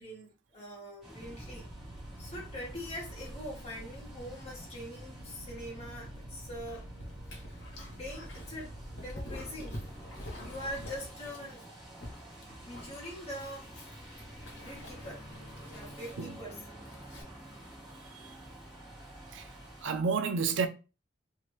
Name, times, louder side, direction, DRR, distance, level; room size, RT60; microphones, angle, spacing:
voice 1, 0.0-1.7 2.2-6.9 7.4-7.6 7.9-9.8 10.4-11.6 12.6-13.7 14.5-15.3 15.7-16.6, equal, 30° left, 1.3 m, -43 dB
sound 1, 1.0-19.8, right 1 dB, ahead, 1.3 m, -51 dB
sound 2, 1.2-11.1, right 1 dB, 35° right, 0.7 m, -47 dB
Dog, 6.7-17.2, left 1 dB, 65° left, 1.1 m, -48 dB
voice 2, 19.8-20.7, right 5 dB, 70° right, 0.4 m, -31 dB
2.8 x 2.5 x 3.1 m
head